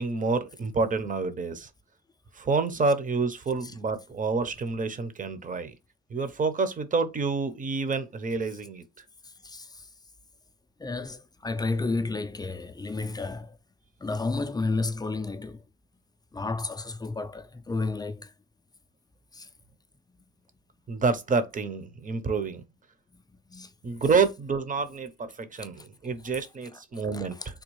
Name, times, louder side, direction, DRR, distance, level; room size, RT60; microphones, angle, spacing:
voice 1, 0.0-1.7 2.3-5.8 6.1-8.8 20.9-22.6 23.8-27.4, right 4 dB, 25° right, 0.6 m, -28 dB
voice 2, 9.2-9.9 10.8-13.6 14.0-15.6 16.3-18.3 19.3-19.5 23.1-23.2 23.5-23.7 25.6-25.9 26.7-26.8 27.1-27.5, left 3 dB, 15° left, 0.3 m, -32 dB
3.5 x 2.3 x 3.1 m
cardioid pair, 90°, 30 cm